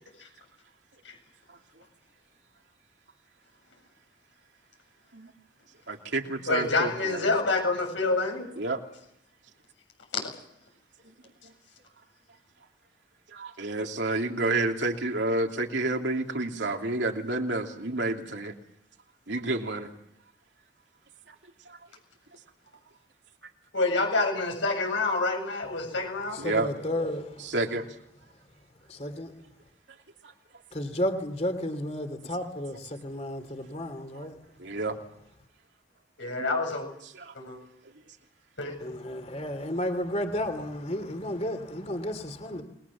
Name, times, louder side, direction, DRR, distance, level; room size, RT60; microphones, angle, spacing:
voice 1, 5.9-7.3 8.6-8.8 13.3-18.5 19.3-19.9 21.7-21.8 26.4-26.7 27.4-27.9 34.1-34.3 34.6-35.0 37.1-37.3, right 2 dB, 75° right, 2.9 m, -29 dB
voice 2, 6.5-8.5 10.2-10.3 23.7-26.4 36.2-36.9 37.3-37.6 38.6-38.7, left 3 dB, 85° left, 7.7 m, -27 dB
voice 3, 26.3-27.5 28.9-29.3 30.7-34.3 38.8-42.6, left 1 dB, 35° left, 2.9 m, -32 dB
29.0 x 21.5 x 7.3 m
head